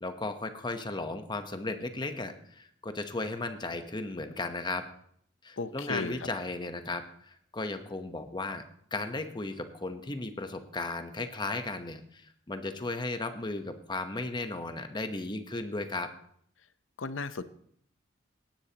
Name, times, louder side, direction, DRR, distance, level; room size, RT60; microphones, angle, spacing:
voice 1, 0.0-4.8 5.4-8.6 8.9-16.1, left 2 dB, 25° left, 8 dB, 1.0 m, -35 dB
voice 2, 5.6-6.2 17.0-17.4, left 4 dB, 80° left, 13 dB, 0.7 m, -34 dB
18.0 x 10.0 x 2.9 m, 0.65 s
head